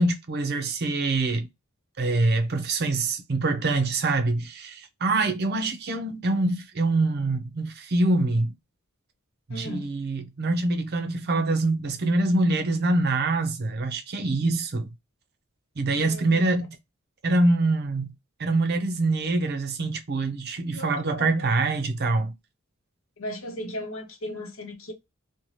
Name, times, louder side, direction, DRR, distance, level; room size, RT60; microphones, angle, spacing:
voice 1, 0.0-1.5 2.0-8.5 9.5-14.9 15.8-16.7 17.2-18.1 18.4-22.3, right 2 dB, 50° right, 0.6 m, -25 dB
voice 2, 9.5-9.9 16.0-16.5 20.7-21.5 23.2-24.9, equal, 70° left, 0.8 m, -36 dB
2.7 x 2.1 x 3.1 m
head